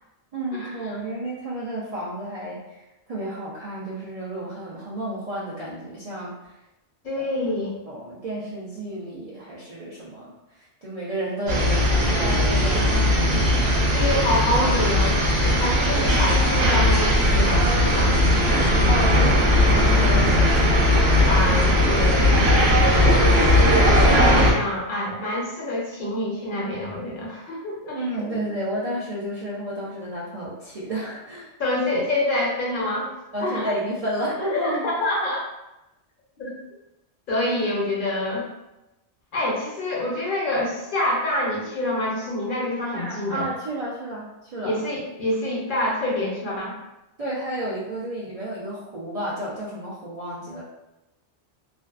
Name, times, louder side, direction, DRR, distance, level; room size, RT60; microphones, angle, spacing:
voice 1, 0.3-2.8 3.1-6.5 7.1-7.5 7.9-13.1 18.8-21.1 28.0-31.5 33.3-34.9 42.9-44.8 47.2-50.6, right 1 dB, 50° right, -8 dB, 0.4 m, -31 dB
voice 2, 7.0-7.8 13.9-18.2 21.1-22.7 23.3-28.0 28.3-28.4 31.6-33.1 33.4-33.7 34.5-35.4 36.4-36.5 37.3-38.4 39.3-43.5 44.6-46.7, left 1 dB, 55° left, -4 dB, 0.8 m, -26 dB
sound 1, 11.5-24.5, left 1 dB, 70° right, 0.9 m, -18 dB
2.5 x 2.3 x 2.3 m, 0.94 s
omnidirectional pair, 1.1 m